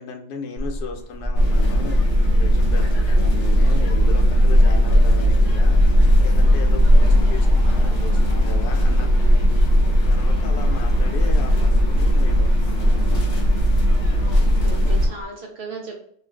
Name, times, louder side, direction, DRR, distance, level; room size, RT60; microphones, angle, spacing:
voice 1, 0.0-2.0 2.4-5.8 6.2-9.1 10.1-13.4, left 4 dB, 85° left, 4 dB, 1.1 m, -36 dB
Motor vehicle (road), 0.6-15.2, equal, 5° left, 1.0 m, -32 dB
sound 1, 1.3-15.1, equal, 60° left, 0.9 m, -17 dB
voice 2, 2.7-3.0 6.9-7.2 9.3-9.5 13.1-13.4 14.2-16.1, right 3 dB, 75° right, -1 dB, 0.6 m, -38 dB
2.4 x 2.4 x 3.2 m, 0.65 s
omnidirectional pair, 1.6 m